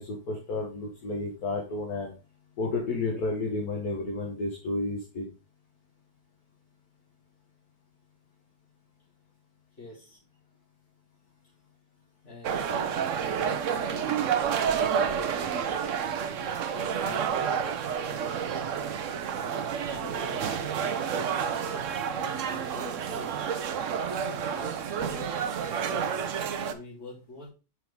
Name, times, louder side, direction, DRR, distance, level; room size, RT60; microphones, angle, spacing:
voice 1, 0.0-2.1 2.6-5.3, left 2 dB, 60° left, 0 dB, 1.7 m, -31 dB
voice 2, 9.8-10.2 12.2-14.2 14.8-15.9 16.8-18.7 19.8-23.4 24.1-26.1 26.7-27.5, left 1 dB, 40° left, -5 dB, 3.6 m, -46 dB
sound 1, 12.4-26.7, right 7 dB, 65° right, 0.8 m, -30 dB
6.1 x 5.9 x 3.6 m, 0.32 s
omnidirectional pair, 1.9 m